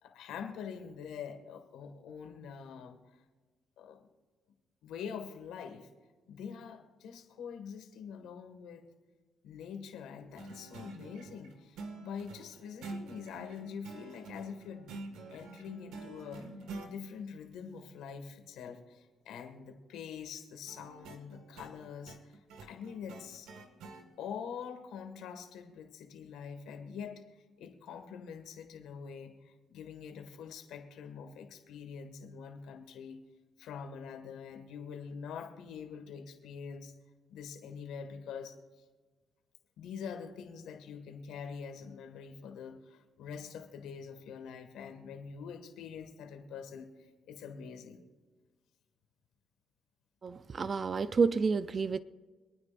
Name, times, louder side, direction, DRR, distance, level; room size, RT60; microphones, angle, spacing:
voice 1, 0.0-3.2 3.8-4.1 4.8-5.9 6.3-8.8 9.4-14.9 15.3-16.5 16.8-23.5 24.2-33.2 33.6-36.9 37.3-38.6 39.8-48.0, left 6 dB, 85° left, 1.8 m, -45 dB
sound 1, 10.4-16.9 20.7-24.0, right 3 dB, 90° right, 1.8 m, -47 dB
voice 2, 50.2-52.0, right 5 dB, 40° right, 0.4 m, -29 dB
25.0 x 9.7 x 2.5 m
cardioid pair, 90°, 0 cm